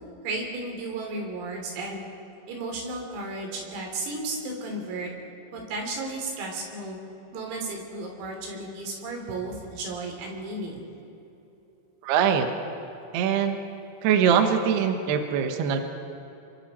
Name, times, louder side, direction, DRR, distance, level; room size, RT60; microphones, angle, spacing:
voice 1, 0.2-2.0 2.5-5.1 5.5-7.0 7.3-10.8, right 2 dB, 85° right, 1 dB, 6.2 m, -34 dB
voice 2, 12.0-12.5 13.1-13.6 14.0-15.8, right 7 dB, 70° right, 5 dB, 2.8 m, -22 dB
28.5 x 23.5 x 4.4 m, 2.9 s
omnidirectional pair, 6.0 m